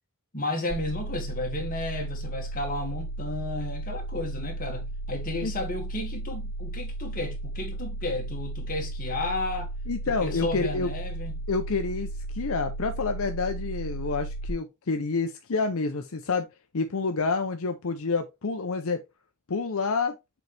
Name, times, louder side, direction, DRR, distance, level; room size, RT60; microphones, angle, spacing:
voice 1, 0.3-9.7 10.2-11.4, left 2 dB, 40° left, 1.9 m, -33 dB
sound 1, 0.7-14.5, right 2 dB, 75° right, 0.8 m, -34 dB
voice 2, 9.9-10.9 11.5-12.1 12.3-16.5 16.7-19.0 19.5-20.2, left 4 dB, 75° left, 0.7 m, -28 dB
6.8 x 4.1 x 3.3 m
head